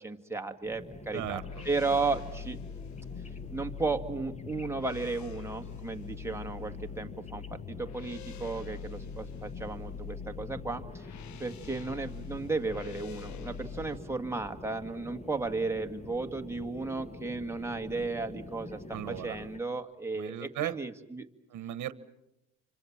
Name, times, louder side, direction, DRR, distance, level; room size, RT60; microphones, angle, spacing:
voice 1, 0.0-2.6 3.5-11.1 11.4-18.8 19.1-21.3, right 3 dB, 10° right, 5 dB, 1.9 m, -34 dB
sound 1, 0.6-19.6, left 2 dB, 20° left, 1.5 m, -47 dB
voice 2, 1.1-1.5 1.9-2.1 18.9-19.5 20.1-20.8 21.5-21.9, right 12 dB, 75° right, 15 dB, 1.1 m, -37 dB
sound 2, 1.2-14.0, left 7 dB, 70° left, 1.0 m, -43 dB
28.0 x 25.5 x 7.4 m, 0.89 s
cardioid pair, 90°, 30 cm